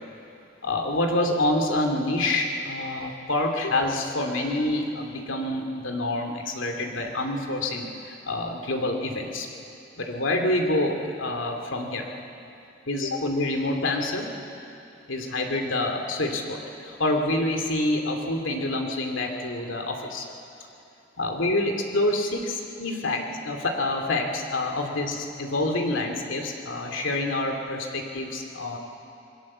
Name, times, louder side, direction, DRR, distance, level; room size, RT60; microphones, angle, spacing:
voice 1, 0.6-9.5 10.0-12.1 12.9-14.3 15.1-20.2 21.2-28.8, left 2 dB, 80° left, 3 dB, 2.7 m, -27 dB
27.0 x 20.5 x 7.5 m, 2.7 s
head